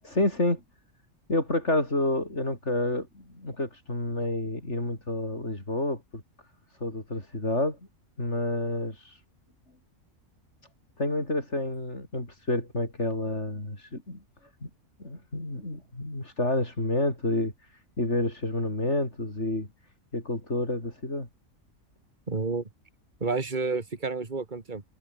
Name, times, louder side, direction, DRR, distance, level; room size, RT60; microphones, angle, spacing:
voice 1, 0.0-0.6 1.3-6.2 6.8-7.8 8.2-9.0 11.0-14.2 14.6-14.7 15.0-17.5 18.0-19.7 20.1-21.3, left 1 dB, 55° left, 6.8 m, -29 dB
voice 2, 22.3-22.6 23.2-24.8, right 4 dB, 35° right, 2.4 m, -30 dB
omnidirectional pair, 1.5 m